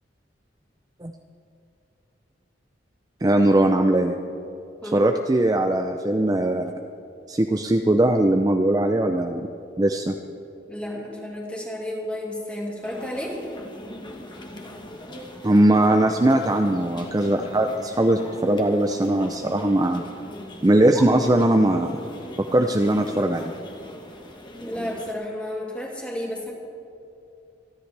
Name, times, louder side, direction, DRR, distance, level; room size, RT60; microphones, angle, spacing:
voice 1, 3.2-4.1 4.9-6.6 7.3-9.5 9.8-10.2 15.4-20.0 20.6-22.0 22.5-23.5, right 1 dB, 20° right, 4 dB, 0.5 m, -20 dB
voice 2, 10.7-13.4 20.9-21.0 24.6-26.5, left 1 dB, 5° left, -3 dB, 2.4 m, -32 dB
sound 1, 12.8-25.1, left 1 dB, 25° left, 1.3 m, -41 dB
27.5 x 10.5 x 3.4 m, 2.7 s
head